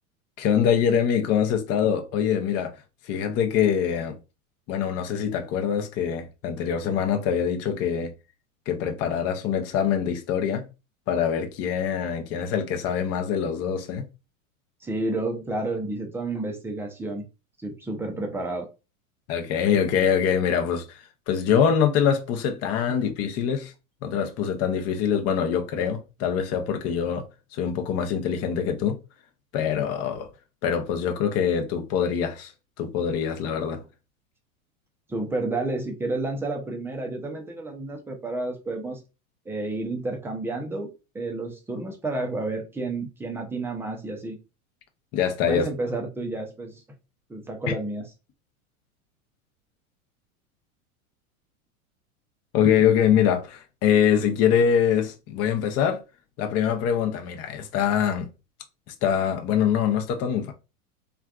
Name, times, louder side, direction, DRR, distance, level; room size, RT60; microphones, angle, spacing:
voice 1, 0.4-2.7 3.1-4.2 4.7-8.1 8.7-10.7 11.1-14.1 19.3-23.7 24.0-27.2 27.5-29.0 29.5-30.3 30.6-32.5 32.8-33.8 45.1-45.7 52.5-56.0 56.4-58.3 59.0-60.5, left 8 dB, 35° left, 0.7 m, -24 dB
voice 2, 14.8-17.2 17.6-18.7 35.1-39.0 39.5-44.4 45.4-46.8 47.3-48.1, right 2 dB, 5° right, 0.4 m, -30 dB
3.3 x 2.3 x 2.4 m
hypercardioid pair, 110°, 43 cm